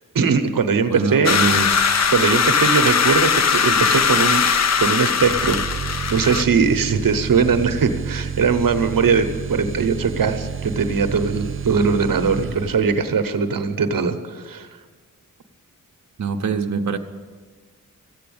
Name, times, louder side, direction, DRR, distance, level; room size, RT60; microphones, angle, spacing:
voice 1, 0.1-1.4 2.1-4.4 4.8-5.6 6.1-14.7, right 5 dB, 85° right, 8 dB, 0.9 m, -20 dB
voice 2, 0.9-2.1 16.2-17.0, right 5 dB, 55° right, 4 dB, 0.9 m, -24 dB
sound 1, 1.2-6.4, left 6 dB, 55° left, 0.6 m, -19 dB
sound 2, 5.1-13.1, right 7 dB, 40° right, 0.5 m, -30 dB
14.0 x 8.5 x 8.7 m, 1.5 s
wide cardioid pair, 115°, 33 cm